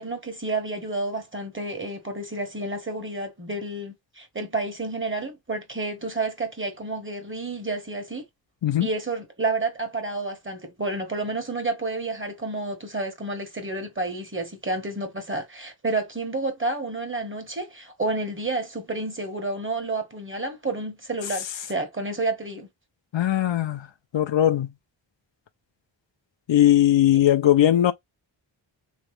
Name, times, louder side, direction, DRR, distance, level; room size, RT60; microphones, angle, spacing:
voice 1, 0.0-8.2 8.8-22.7, right 2 dB, 25° right, 1.4 m, -30 dB
voice 2, 23.1-23.9 24.1-24.7 26.5-27.9, left 12 dB, 75° left, 0.7 m, -19 dB
3.4 x 3.2 x 3.2 m
wide cardioid pair, 100°, 45 cm